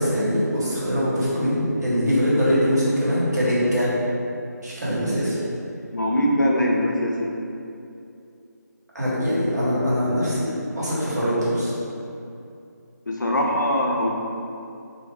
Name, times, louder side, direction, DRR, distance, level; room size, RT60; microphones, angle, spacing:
voice 1, 0.0-3.9 4.6-5.4 8.9-11.7, equal, 65° right, -8 dB, 1.0 m, -22 dB
voice 2, 5.9-7.3 13.1-14.1, equal, 80° left, -1 dB, 0.5 m, -22 dB
2.3 x 2.0 x 3.3 m, 2.6 s
figure-of-eight pair, 155°, 10 cm